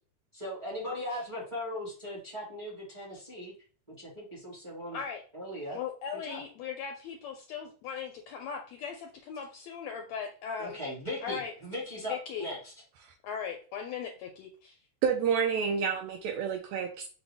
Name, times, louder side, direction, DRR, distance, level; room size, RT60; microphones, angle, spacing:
voice 1, 0.3-3.5 4.0-5.0 5.3-5.8 6.2-6.4 10.6-12.7, left 1 dB, 25° right, -6 dB, 0.6 m, -38 dB
voice 2, 5.7-10.8 11.2-11.5 12.1-12.5 13.2-14.8, left 7 dB, 80° left, 3 dB, 1.5 m, -38 dB
voice 3, 15.0-17.1, right 6 dB, 80° right, 3 dB, 1.6 m, -29 dB
5.9 x 2.2 x 3.4 m, 0.39 s
omnidirectional pair, 3.5 m